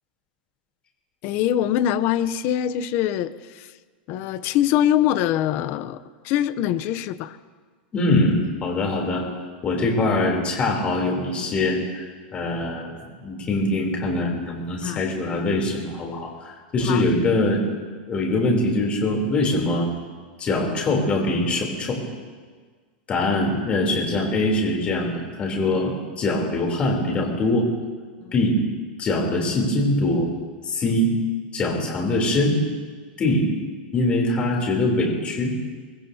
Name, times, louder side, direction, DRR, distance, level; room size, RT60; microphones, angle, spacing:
voice 1, 1.2-3.7 4.1-7.4 14.8-15.0 16.9-17.0 28.2-28.3, left 11 dB, 40° left, 13 dB, 0.7 m, -23 dB
voice 2, 7.9-9.3 9.6-12.0 12.3-12.9 13.2-17.6 18.1-19.9 20.4-22.0 23.1-27.7 28.3-28.5 29.0-30.2 30.7-31.1 31.5-32.6 33.2-33.5 33.9-35.5, left 2 dB, 20° left, -1 dB, 3.3 m, -23 dB
23.0 x 22.0 x 2.8 m, 1.5 s
supercardioid pair, 155°, 6 cm